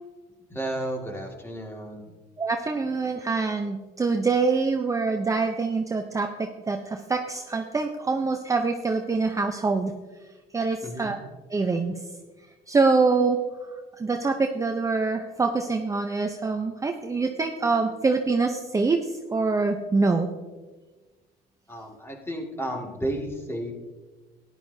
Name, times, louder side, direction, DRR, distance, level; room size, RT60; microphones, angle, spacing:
voice 1, 0.5-2.1 10.8-11.1 21.7-23.7, right 1 dB, 15° left, 1 dB, 2.0 m, -32 dB
voice 2, 2.4-9.9 10.5-11.2 11.5-11.9 12.7-13.4 14.0-20.3, right 4 dB, 20° right, 4 dB, 0.6 m, -25 dB
14.0 x 10.5 x 2.7 m, 1.3 s
cardioid pair, 110°, 17 cm